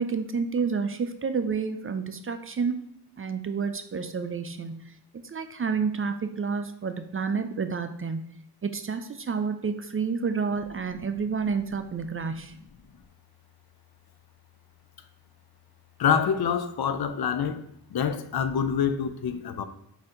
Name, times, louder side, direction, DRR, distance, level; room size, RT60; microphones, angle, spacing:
voice 1, 0.0-2.8 3.2-4.9 5.2-8.2 8.6-12.5, right 5 dB, 35° right, 0.4 m, -29 dB
voice 2, 16.0-17.6 17.9-19.6, left 7 dB, 65° left, 0.5 m, -26 dB
4.2 x 2.7 x 3.7 m
cardioid pair, 50°, 40 cm